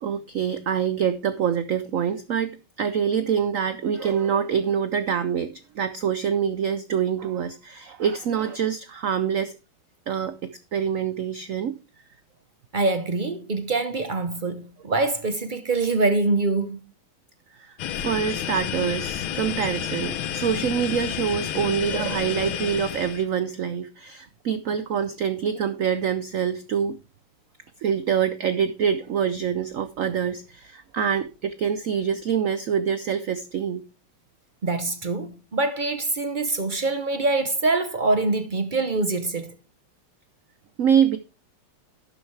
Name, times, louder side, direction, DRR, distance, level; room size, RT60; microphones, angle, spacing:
voice 1, 0.0-9.6 10.1-11.8 17.5-27.0 27.8-33.8 40.8-41.2, right 8 dB, 90° right, 0.7 m, -25 dB
voice 2, 12.7-16.8 34.6-39.6, right 3 dB, 50° right, 0.5 m, -24 dB
sound 1, 17.8-23.3, left 10 dB, 80° left, 1.6 m, -30 dB
12.0 x 9.0 x 3.3 m
omnidirectional pair, 2.2 m